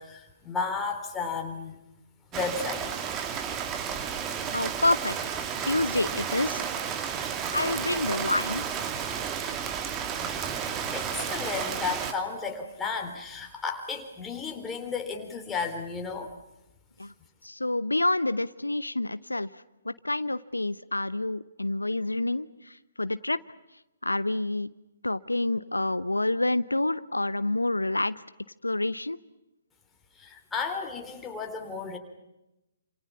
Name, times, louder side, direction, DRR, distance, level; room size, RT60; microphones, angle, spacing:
voice 1, 0.0-1.8 2.3-2.9 10.6-16.3 30.1-32.0, left 5 dB, 10° left, 2 dB, 3.9 m, -33 dB
Rain, 2.3-12.1, right 7 dB, 20° right, 2.0 m, -32 dB
voice 2, 4.5-5.4 5.7-6.6 7.5-8.6 17.0-17.1 17.4-19.5 19.8-23.4 24.0-24.7 25.0-28.1 28.6-29.2, left 2 dB, 80° left, 15 dB, 0.8 m, -28 dB
29.5 x 27.5 x 5.8 m, 0.95 s
figure-of-eight pair, 130°, 0 cm